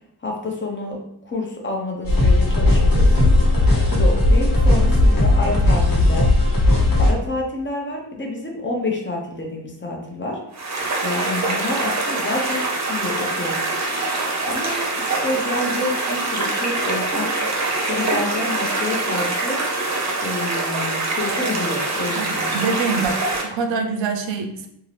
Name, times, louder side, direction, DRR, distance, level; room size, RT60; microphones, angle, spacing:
voice 1, 0.2-3.4 3.9-6.3 7.0-10.4 11.0-12.6 12.9-13.6 14.5-17.3 17.9-19.6 20.2-22.6, left 2 dB, 25° left, 0 dB, 0.6 m, -28 dB
sound 1, 2.0-7.1, left 2 dB, 50° left, 1.1 m, -16 dB
sound 2, 10.5-23.4, right 2 dB, 40° right, 0.6 m, -24 dB
voice 2, 22.2-24.7, right 4 dB, 85° right, 5 dB, 0.5 m, -25 dB
2.7 x 2.4 x 3.2 m, 0.76 s
wide cardioid pair, 125°, 44 cm